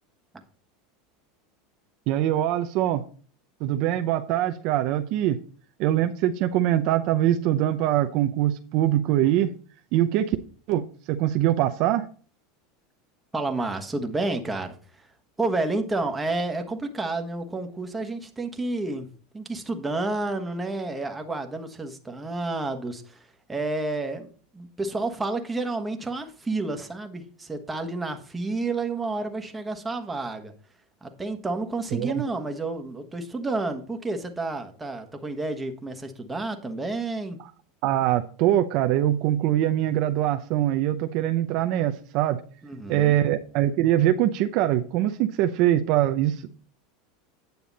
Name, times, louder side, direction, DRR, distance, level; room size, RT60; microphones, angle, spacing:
voice 1, 2.1-3.0 3.6-5.4 5.8-9.5 9.9-10.4 10.7-12.1 31.9-32.2 37.8-42.4 42.9-46.5, right 12 dB, 55° right, 8 dB, 0.6 m, -23 dB
voice 2, 13.3-15.1 15.4-30.5 31.0-37.4 42.6-43.2, right 2 dB, 10° right, 5 dB, 1.3 m, -30 dB
9.3 x 6.9 x 4.1 m, 0.42 s
supercardioid pair, 125°, 0 cm